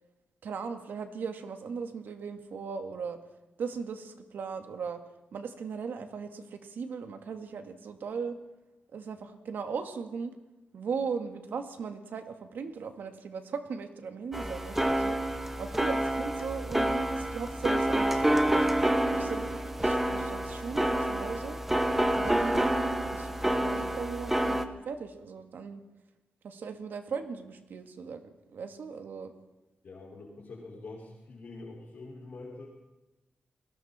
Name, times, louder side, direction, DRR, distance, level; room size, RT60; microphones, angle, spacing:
voice 1, 0.4-3.2 3.6-5.0 5.3-8.4 8.9-10.3 10.7-18.8 19.1-21.6 22.1-22.7 23.1-25.8 26.4-28.2 28.5-29.3, right 5 dB, 90° right, 6 dB, 2.1 m, -38 dB
sound 1, 14.3-24.7, right 1 dB, 10° right, 1.3 m, -28 dB
voice 2, 29.8-32.7, left 3 dB, 50° left, -5 dB, 5.5 m, -45 dB
30.0 x 21.0 x 4.4 m, 1.0 s
wide cardioid pair, 165°, 3 cm